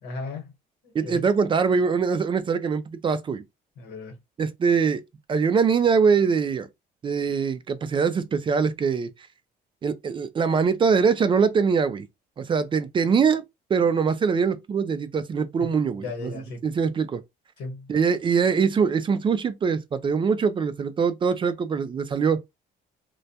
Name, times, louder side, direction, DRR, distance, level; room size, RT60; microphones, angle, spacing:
voice 1, 0.0-0.5 0.8-1.3 3.8-4.2 15.6-16.6 17.6-17.9, left 3 dB, 80° left, 1.1 m, -36 dB
voice 2, 0.9-3.4 4.4-5.0 5.3-6.7 7.0-9.1 9.8-12.1 12.4-13.4 13.7-16.3 16.6-17.2 17.9-22.4, right 5 dB, 30° right, 0.3 m, -23 dB
2.2 x 2.1 x 2.7 m
cardioid pair, 110°, 17 cm